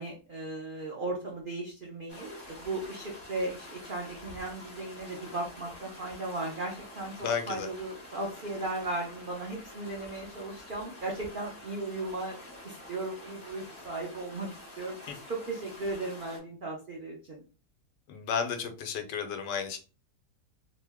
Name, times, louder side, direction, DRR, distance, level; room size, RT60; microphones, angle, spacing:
voice 1, 0.0-12.4 12.6-14.5 14.8-17.4, right 2 dB, 80° right, -1 dB, 0.4 m, -36 dB
sound 1, 2.1-16.4, left 1 dB, 20° left, 1.2 m, -48 dB
voice 2, 7.2-7.7 18.1-19.8, left 6 dB, 80° left, 6 dB, 1.2 m, -32 dB
2.9 x 2.1 x 3.4 m, 0.34 s
omnidirectional pair, 1.9 m